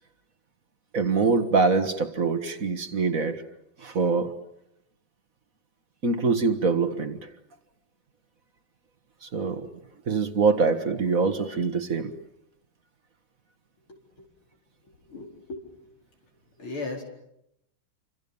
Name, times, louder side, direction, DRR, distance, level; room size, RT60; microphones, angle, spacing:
voice 1, 0.9-3.4 3.8-4.3 6.0-7.2 9.2-9.7 10.1-12.1, right 4 dB, 45° right, 8 dB, 1.9 m, -24 dB
voice 2, 13.9-14.3 15.0-15.7 16.6-17.0, left 3 dB, 90° left, 0 dB, 5.4 m, -37 dB
29.5 x 26.0 x 7.1 m, 0.80 s
omnidirectional pair, 2.2 m